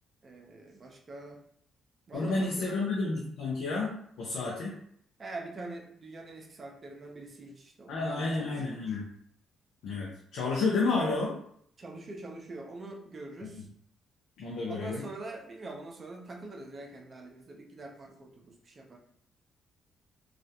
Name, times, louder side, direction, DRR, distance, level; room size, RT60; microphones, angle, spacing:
voice 1, 0.2-1.4 2.1-2.8 5.2-9.0 11.8-13.7 14.7-19.0, right 2 dB, 35° right, 1 dB, 0.5 m, -44 dB
voice 2, 2.1-3.9 4.2-4.7 7.9-9.1 9.8-11.4 13.4-13.5 14.4-15.1, left 3 dB, 80° left, -4 dB, 0.5 m, -30 dB
2.4 x 2.0 x 2.8 m, 0.65 s
cardioid pair, 90°, 0 cm